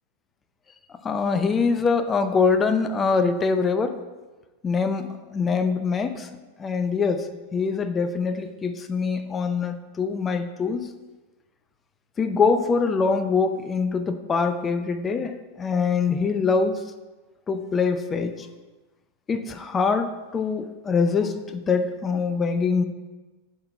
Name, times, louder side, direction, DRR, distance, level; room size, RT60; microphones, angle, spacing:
voice 1, 1.0-4.0 4.6-6.3 6.6-10.9 12.2-16.8 17.5-18.5 19.3-22.8, left 5 dB, 20° left, 9 dB, 0.4 m, -24 dB
8.5 x 4.2 x 2.7 m, 1.2 s
figure-of-eight pair, 90°, 0 cm